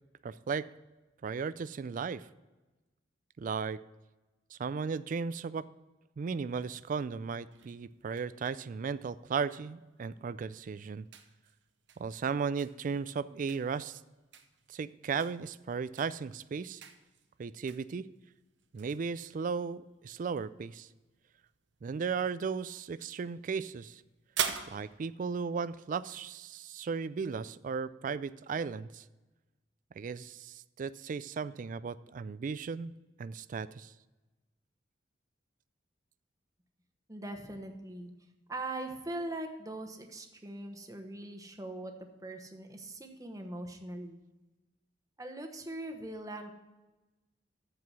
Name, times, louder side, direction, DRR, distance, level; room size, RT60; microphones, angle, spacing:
voice 1, 0.2-0.7 1.2-2.3 3.4-3.8 4.5-5.7 6.2-11.0 12.0-14.0 14.7-16.8 17.4-18.1 18.7-20.9 21.8-24.0 24.7-29.0 30.0-32.9 33.2-33.9, right 5 dB, 45° right, 17 dB, 0.3 m, -36 dB
sound 1, 7.5-26.3, right 8 dB, 80° right, 0.8 m, -46 dB
voice 2, 37.1-38.1 38.5-41.9 42.2-44.2 45.2-46.5, right 1 dB, 20° right, 5 dB, 1.0 m, -41 dB
14.0 x 4.8 x 6.1 m, 1.1 s
head